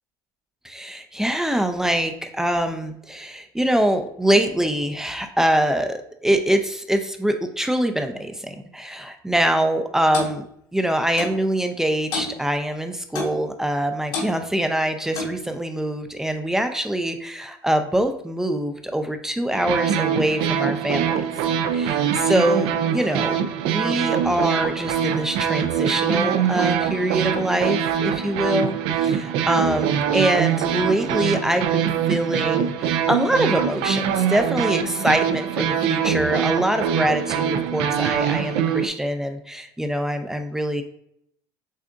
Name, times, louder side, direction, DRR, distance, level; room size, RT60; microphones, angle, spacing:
voice 1, 0.6-10.5 10.7-21.3 21.7-23.4 23.6-40.8, right 1 dB, 5° right, 6 dB, 0.4 m, -24 dB
Clock, 10.1-10.4 11.2-11.4 12.1-12.4 13.2-13.4 14.1-14.3 15.1-15.4, left 3 dB, 65° left, 1.3 m, -29 dB
sound 1, 19.5-38.9, right 8 dB, 70° right, 0.4 m, -23 dB
6.4 x 2.4 x 2.4 m, 0.72 s
supercardioid pair, 110°, 9 cm